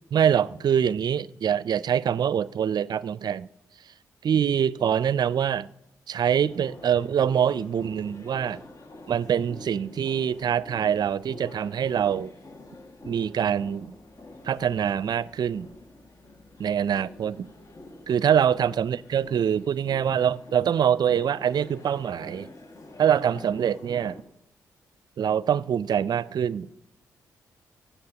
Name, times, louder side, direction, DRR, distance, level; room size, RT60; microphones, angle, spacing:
voice 1, 0.1-3.5 4.2-5.7 6.1-8.6 9.1-12.3 13.1-13.9 14.4-15.7 16.6-17.5 18.1-22.5 23.0-24.2 25.2-26.7, right 8 dB, 55° right, 0.5 m, -24 dB
sound 1, 6.5-24.2, left 2 dB, 40° left, 2.0 m, -47 dB
23.0 x 10.0 x 2.9 m
hypercardioid pair, 40°, 8 cm